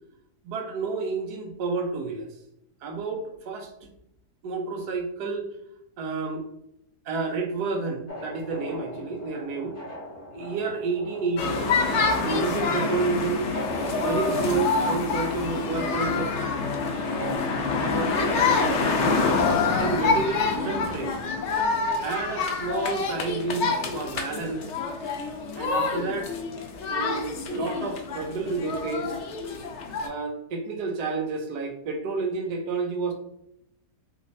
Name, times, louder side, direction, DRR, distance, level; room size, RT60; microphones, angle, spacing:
voice 1, 0.4-2.3 2.8-3.7 4.4-5.5 6.0-6.4 7.1-9.8 10.3-11.7 12.2-13.5 14.0-16.3 17.8-19.4 19.8-21.2 22.0-24.7 25.5-26.3 26.9-29.1 30.0-33.1, right 4 dB, 80° right, 4 dB, 1.2 m, -30 dB
sound 1, 8.1-18.7, left 1 dB, 15° left, 0.5 m, -38 dB
sound 2, 11.4-30.1, left 4 dB, 65° left, 0.7 m, -27 dB
3.3 x 3.1 x 2.6 m, 0.77 s
omnidirectional pair, 1.7 m